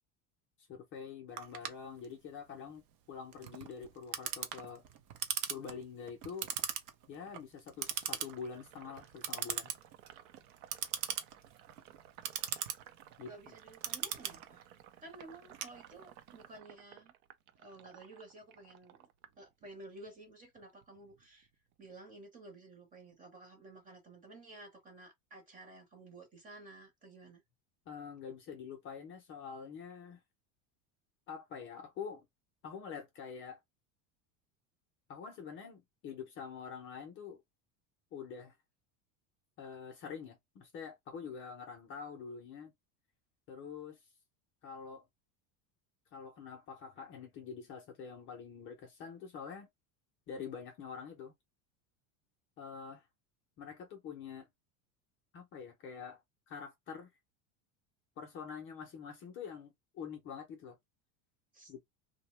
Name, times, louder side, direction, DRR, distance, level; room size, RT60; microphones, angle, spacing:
voice 1, 0.7-2.8 3.1-4.8 5.5-6.5 7.1-9.7 13.2-13.3 27.9-30.2 31.3-32.3 32.6-33.6 35.1-37.4 38.1-38.6 39.6-42.7 43.5-44.0 44.6-45.0 46.1-49.7 50.3-51.3 52.6-53.1 53.6-54.5 55.3-56.2 56.5-57.1 58.2-60.8 61.7-61.8, left 6 dB, 30° left, 0.5 m, -46 dB
Clock, 1.4-16.3, right 9 dB, 45° right, 0.5 m, -40 dB
Sink (filling or washing), 7.8-20.1 20.4-21.9, right 11 dB, 90° right, 0.7 m, -57 dB
voice 2, 13.2-14.7 15.0-17.1 17.6-19.1 19.4-21.5 21.8-27.4 61.5-61.8, right 2 dB, 20° right, 0.8 m, -53 dB
2.7 x 2.1 x 3.0 m
cardioid pair, 165°, 41 cm